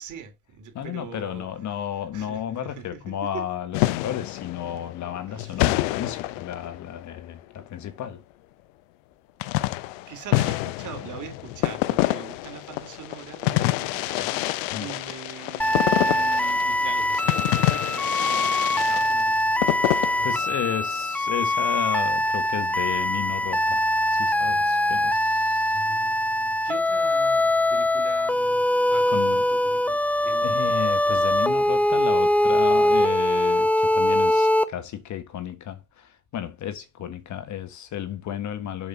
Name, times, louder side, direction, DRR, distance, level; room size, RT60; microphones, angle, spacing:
voice 1, 0.0-1.5 2.1-3.5 5.3-5.7 10.1-20.3 25.7-30.6, right 7 dB, 45° right, 3.1 m, -42 dB
voice 2, 0.7-8.2 14.7-14.9 19.9-23.8 24.1-25.8 29.1-29.4 30.4-38.9, left 10 dB, 45° left, 1.4 m, -33 dB
sound 1, 3.7-7.2 9.4-20.7, left 18 dB, 65° left, 0.7 m, -27 dB
sound 2, 15.6-34.6, left 1 dB, 5° left, 0.7 m, -22 dB
7.3 x 6.1 x 3.9 m
hypercardioid pair, 75°, 42 cm